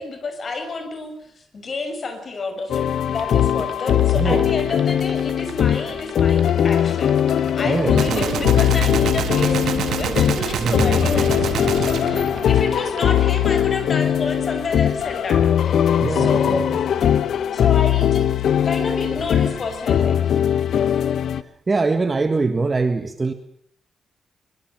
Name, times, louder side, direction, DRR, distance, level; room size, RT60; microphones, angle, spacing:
voice 1, 0.0-7.1 7.5-16.7 17.5-18.2 18.6-20.4, left 3 dB, 40° left, 7 dB, 6.5 m, -29 dB
sound 1, 2.7-21.4, left 9 dB, 70° left, 1.3 m, -20 dB
sound 2, 3.1-13.4, right 9 dB, 65° right, 2.5 m, -40 dB
voice 2, 4.1-4.5 7.6-8.5 10.6-11.1 16.0-16.6 20.7-21.0 21.4-23.3, right 3 dB, 25° right, 8 dB, 1.6 m, -24 dB
Gunshot gunfire, 8.0-13.2, right 10 dB, 85° right, 1.6 m, -27 dB
23.5 x 23.5 x 7.6 m, 0.63 s
wide cardioid pair, 150°, 0 cm